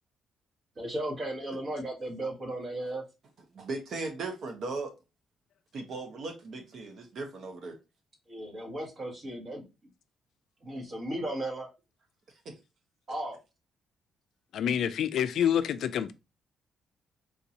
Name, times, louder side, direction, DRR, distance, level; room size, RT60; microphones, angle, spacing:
voice 1, 0.8-3.0 8.3-9.6 10.6-11.7 13.1-13.4, right 1 dB, 45° right, 1.4 m, -35 dB
voice 2, 3.5-4.9 5.7-7.8 12.4-12.6, right 3 dB, 60° right, 0.9 m, -37 dB
voice 3, 14.5-16.1, left 9 dB, 70° left, 0.3 m, -27 dB
3.7 x 2.6 x 2.7 m
cardioid pair, 90°, 0 cm